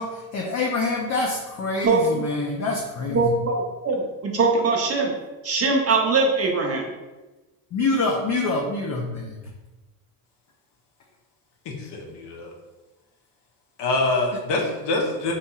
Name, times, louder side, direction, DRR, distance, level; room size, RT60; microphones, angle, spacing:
voice 1, 0.0-3.3 7.7-9.4, left 3 dB, 35° left, 0 dB, 0.4 m, -26 dB
voice 2, 1.8-2.3 3.1-5.1 5.4-6.8, right 3 dB, 30° right, 0 dB, 0.5 m, -22 dB
voice 3, 11.7-12.5 13.8-15.4, left 2 dB, 55° left, 1 dB, 0.8 m, -25 dB
2.9 x 2.7 x 2.3 m, 1.2 s
supercardioid pair, 65°, 50 cm